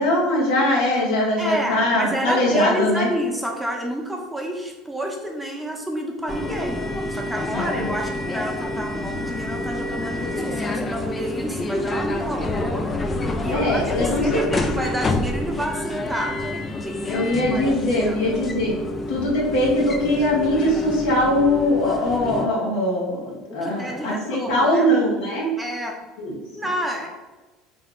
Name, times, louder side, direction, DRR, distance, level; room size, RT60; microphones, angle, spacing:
voice 1, 0.0-3.1 7.5-7.9 13.4-14.3 17.1-18.7 19.1-25.5 26.2-26.3, left 1 dB, 80° left, -3 dB, 0.8 m, -21 dB
voice 2, 1.4-6.8 7.1-12.9 13.4-18.3 23.5-24.9 25.6-26.0 26.6-27.1, equal, 5° right, 0 dB, 0.8 m, -29 dB
sound 1, 6.3-22.5, left 2 dB, 30° left, 0.4 m, -28 dB
3.4 x 2.2 x 3.7 m, 1.2 s
hypercardioid pair, 85°, 0 cm